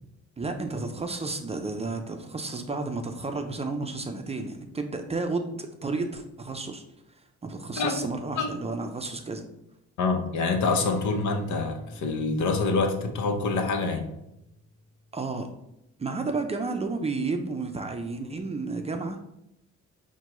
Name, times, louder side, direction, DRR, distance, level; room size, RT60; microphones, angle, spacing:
voice 1, 0.4-6.8 7.4-9.4 15.1-15.5 16.0-19.2, right 3 dB, 20° right, 5 dB, 0.4 m, -32 dB
voice 2, 7.8-8.1 8.3-8.5 10.0-14.1, left 3 dB, 70° left, 5 dB, 0.7 m, -26 dB
sound 1, 10.6-15.6, left 2 dB, 30° left, 1.0 m, -46 dB
5.9 x 2.2 x 3.0 m, 0.83 s
cardioid pair, 90°, 30 cm